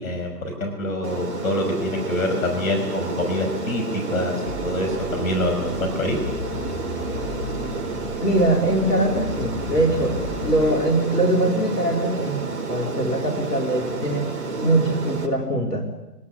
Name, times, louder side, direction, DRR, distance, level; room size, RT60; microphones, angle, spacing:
voice 1, 0.0-6.2, left 1 dB, 60° left, 4 dB, 5.7 m, -26 dB
Aircraft, 1.0-15.3, right 3 dB, 45° right, 4.5 m, -30 dB
sound 1, 4.5-10.9, left 2 dB, 25° left, 7.2 m, -35 dB
voice 2, 8.2-12.4 12.7-14.3 14.6-15.9, right 1 dB, 80° left, 2 dB, 4.2 m, -22 dB
24.0 x 18.5 x 9.9 m, 1.0 s
figure-of-eight pair, 125°, 47 cm